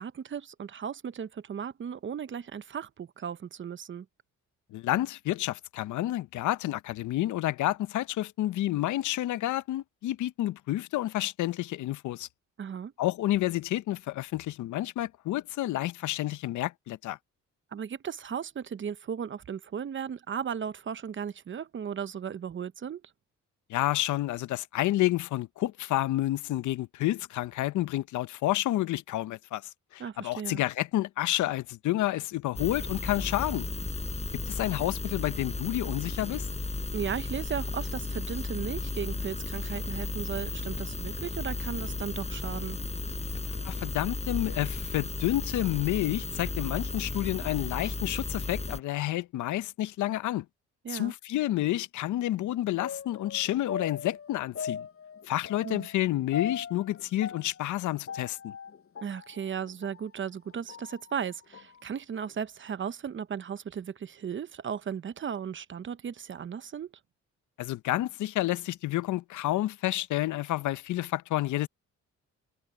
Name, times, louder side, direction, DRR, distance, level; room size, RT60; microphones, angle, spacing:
voice 1, 0.0-4.1 12.6-12.9 17.7-23.0 30.0-30.6 36.9-42.8 50.8-51.1 55.6-55.9 59.0-66.9, right 7 dB, 40° right, 0.8 m, -36 dB
voice 2, 4.7-12.3 13.0-17.2 23.7-29.6 29.9-33.7 34.5-36.5 43.6-50.5 50.9-54.9 55.3-58.6 67.6-71.7, left 15 dB, 75° left, 0.7 m, -29 dB
sound 1, 32.6-48.8, left 3 dB, 20° left, 4.8 m, -34 dB
sound 2, 52.8-60.0 60.5-61.8 62.2-62.3, left 7 dB, 45° left, 7.2 m, -40 dB
cardioid pair, 90°, 30 cm